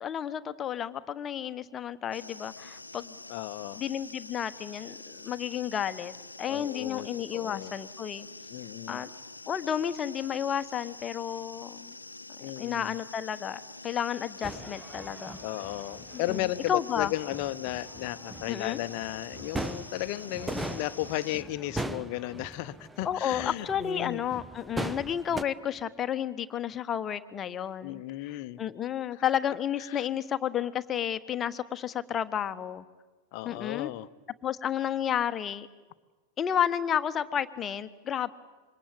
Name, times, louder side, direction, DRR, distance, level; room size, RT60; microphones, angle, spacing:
voice 1, 0.0-3.2 3.8-6.1 6.4-8.3 8.9-9.1 9.5-11.9 12.6-15.4 16.1-17.1 18.5-18.8 23.0-32.8 33.4-33.9 34.4-35.7 36.4-38.3, left 9 dB, 25° left, 12 dB, 1.2 m, -32 dB
sound 1, 2.1-21.4, left 3 dB, 80° left, 0.9 m, -46 dB
voice 2, 3.3-3.8 6.5-7.7 8.5-9.0 12.4-12.9 15.4-24.2 27.8-28.6 29.1-29.2 29.9-30.1 33.3-34.1, left 15 dB, 45° left, 14 dB, 1.0 m, -35 dB
sound 2, 14.4-25.4, right 2 dB, 5° right, 0.9 m, -40 dB
26.5 x 24.0 x 9.0 m, 1.3 s
figure-of-eight pair, 90°, 0 cm